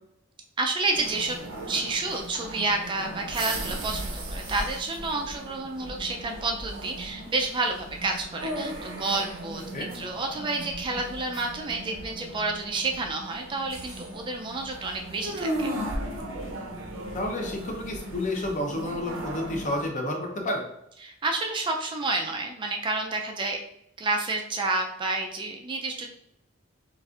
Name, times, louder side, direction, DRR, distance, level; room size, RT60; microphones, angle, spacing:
voice 1, 0.6-1.4 1.7-15.7 21.0-23.6 24.0-26.1, right 3 dB, 25° right, 2 dB, 0.3 m, -30 dB
sound 1, 0.9-19.9, right 1 dB, 75° right, 0.6 m, -37 dB
voice 2, 17.1-20.6, left 1 dB, 40° left, 1 dB, 0.7 m, -30 dB
4.1 x 2.4 x 2.4 m, 0.78 s
head